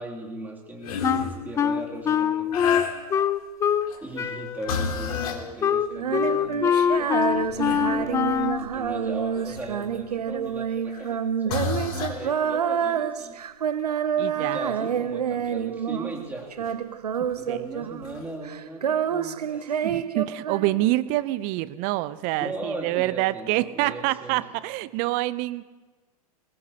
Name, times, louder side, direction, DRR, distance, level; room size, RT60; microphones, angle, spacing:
voice 1, 0.0-2.9 4.0-13.4 14.4-16.8 17.4-19.9 22.4-24.5, right 2 dB, 10° right, -2 dB, 2.7 m, -38 dB
sound 1, 0.8-1.4 2.5-3.2 3.8-4.1 4.7-5.4 6.3-6.4 6.8-10.0 10.9-11.1 11.5-12.2 15.4-15.5 17.2-17.3 18.0-18.2, left 6 dB, 65° left, 2.4 m, -31 dB
Wind instrument woodwind instrument, 1.0-3.9 4.2-8.7, left 8 dB, 15° left, 0.4 m, -24 dB
Female singing, 5.9-16.2 16.5-18.2 18.4-21.1, right 8 dB, 85° right, 0.7 m, -28 dB
voice 2, 14.2-14.6 17.5-17.6 19.8-25.6, right 17 dB, 40° right, 17 dB, 0.6 m, -26 dB
21.0 x 20.0 x 2.9 m, 1.3 s
hypercardioid pair, 105°, 20 cm